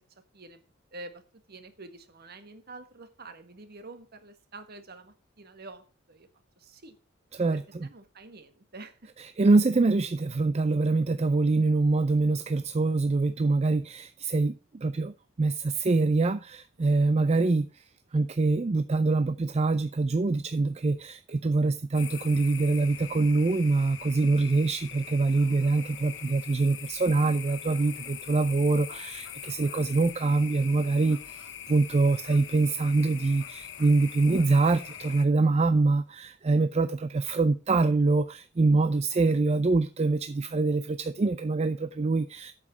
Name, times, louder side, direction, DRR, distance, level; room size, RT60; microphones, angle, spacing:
voice 1, 0.9-1.2 1.5-6.3 6.6-7.0 7.5-9.1, right 2 dB, 50° right, 1.5 m, -47 dB
voice 2, 9.2-17.8 18.1-42.5, right 3 dB, 30° right, 0.4 m, -25 dB
sound 1, 21.9-35.3, left 9 dB, 65° left, 1.1 m, -42 dB
8.5 x 7.2 x 5.9 m
head